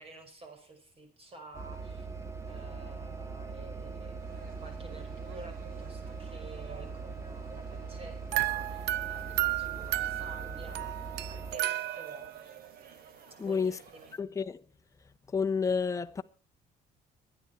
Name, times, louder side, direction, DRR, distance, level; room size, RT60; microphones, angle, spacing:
voice 1, 0.0-2.1 2.4-12.3 13.4-14.1, right 2 dB, 35° right, 5.4 m, -50 dB
sound 1, 1.5-11.6, right 4 dB, 15° right, 1.9 m, -41 dB
sound 2, 4.2-14.1, right 6 dB, 60° right, 3.4 m, -53 dB
sound 3, 8.3-12.4, right 15 dB, 80° right, 0.7 m, -33 dB
voice 2, 13.4-13.8 14.1-14.6 15.3-16.2, left 5 dB, 20° left, 0.8 m, -30 dB
22.5 x 9.8 x 4.5 m
cardioid pair, 110°, 17 cm